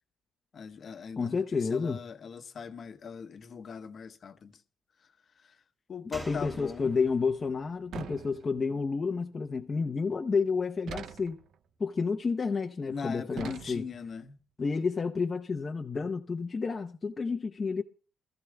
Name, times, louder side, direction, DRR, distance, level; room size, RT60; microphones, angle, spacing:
voice 1, 0.5-4.6 5.0-5.6 5.9-6.9 12.8-14.4, left 6 dB, 50° left, 1.1 m, -40 dB
voice 2, 1.2-2.0 6.3-11.4 11.8-13.8 14.6-17.8, left 4 dB, 35° left, 0.8 m, -30 dB
Slam, 6.1-9.6 9.9-10.0, right 1 dB, 15° right, 3.0 m, -49 dB
sound 1, 7.9-8.8 10.9-11.5 13.4-14.1, right 8 dB, 70° right, 0.6 m, -43 dB
24.5 x 14.5 x 2.3 m
cardioid pair, 90°, 0 cm